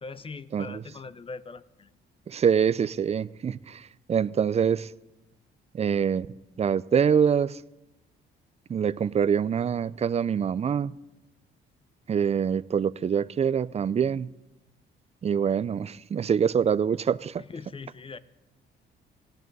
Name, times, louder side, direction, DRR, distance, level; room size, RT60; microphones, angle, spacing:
voice 1, 0.0-1.9 17.4-18.2, left 4 dB, 25° left, 0.7 m, -41 dB
voice 2, 2.3-4.9 5.7-6.3 6.6-7.6 8.7-11.0 12.1-14.3 15.2-17.4, right 7 dB, 30° right, 0.4 m, -25 dB
18.5 x 16.5 x 4.1 m
cardioid pair, 90°, 20 cm